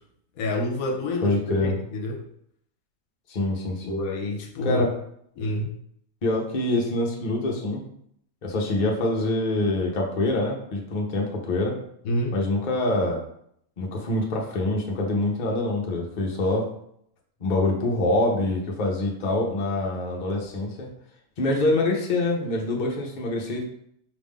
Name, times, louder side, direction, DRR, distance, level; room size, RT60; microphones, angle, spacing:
voice 1, 0.4-2.2 3.8-4.9 5.4-5.7 12.0-12.4, left 1 dB, 75° left, 3 dB, 1.1 m, -28 dB
voice 2, 1.2-1.7 3.3-4.0 4.6-4.9 6.2-7.8 8.4-11.8 12.3-13.2 13.8-16.7 17.4-20.9 21.4-23.6, left 2 dB, 40° left, -1 dB, 0.8 m, -25 dB
5.0 x 2.5 x 3.6 m, 0.70 s
omnidirectional pair, 1.5 m